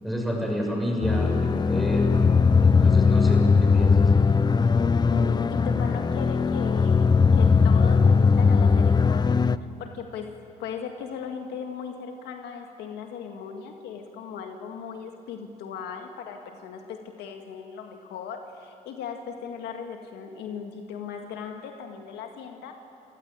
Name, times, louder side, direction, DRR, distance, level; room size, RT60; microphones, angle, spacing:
voice 1, 0.0-2.1 2.6-4.1, equal, ahead, 0 dB, 7.1 m, -29 dB
sound 1, 1.0-9.6, left 5 dB, 25° left, 0.6 m, -19 dB
voice 2, 5.0-9.4 9.8-22.7, left 6 dB, 85° left, 4 dB, 2.0 m, -37 dB
28.5 x 16.0 x 9.0 m, 2.6 s
supercardioid pair, 80°, 17 cm